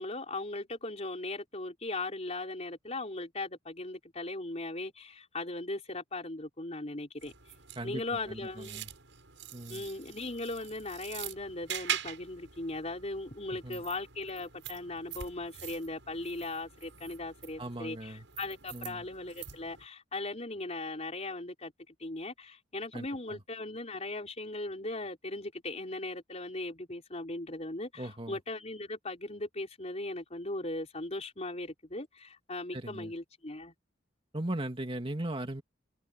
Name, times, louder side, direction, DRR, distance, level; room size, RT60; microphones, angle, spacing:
voice 1, 0.0-7.3 7.8-8.8 9.7-21.7 22.0-33.7, left 2 dB, 35° left, 4.2 m, -38 dB
sound 1, 7.2-19.9, right 9 dB, 80° right, 6.7 m, -44 dB
voice 2, 7.8-8.9 9.5-9.9 13.5-13.8 17.6-18.3 18.7-19.1 22.9-23.4 28.0-28.4 32.7-33.1 34.3-35.6, right 1 dB, 30° right, 2.5 m, -38 dB
head